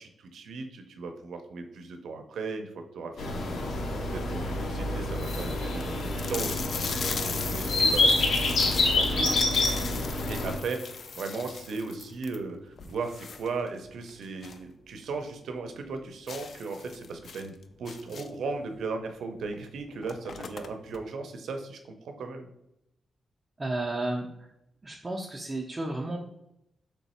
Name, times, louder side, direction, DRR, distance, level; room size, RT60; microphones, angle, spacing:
voice 1, 0.0-3.6 3.9-9.3 10.3-22.5, right 4 dB, 90° right, 6 dB, 0.5 m, -37 dB
sound 1, 3.2-10.6, left 2 dB, 80° left, 0.7 m, -27 dB
sound 2, 3.6-3.8 4.4-4.5 4.7-4.8 5.1-14.7 15.0-15.1 15.5-15.6 16.3-18.5 19.5-19.6 19.9-21.0, left 5 dB, 55° left, 0.3 m, -39 dB
voice 2, 23.6-24.5 24.8-26.2, right 2 dB, 20° right, 0 dB, 0.4 m, -32 dB
3.3 x 3.1 x 4.2 m, 0.82 s
wide cardioid pair, 155°, 0 cm